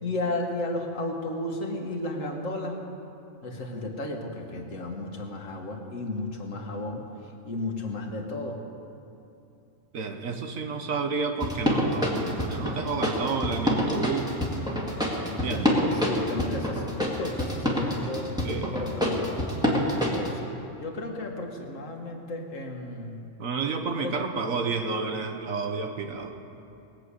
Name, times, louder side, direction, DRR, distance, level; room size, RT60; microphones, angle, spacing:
voice 1, 0.0-2.8 3.4-7.1 7.4-8.7 15.2-19.4 20.0-20.5 20.8-23.3 24.0-24.1, left 2 dB, 75° left, 2 dB, 1.8 m, -33 dB
voice 2, 9.9-14.4 15.4-15.8 18.4-18.9 23.4-26.3, right 4 dB, 85° right, 5 dB, 1.5 m, -30 dB
sound 1, 11.4-20.3, left 1 dB, 5° right, 1.9 m, -26 dB
20.0 x 6.8 x 8.3 m, 2.7 s
omnidirectional pair, 1.4 m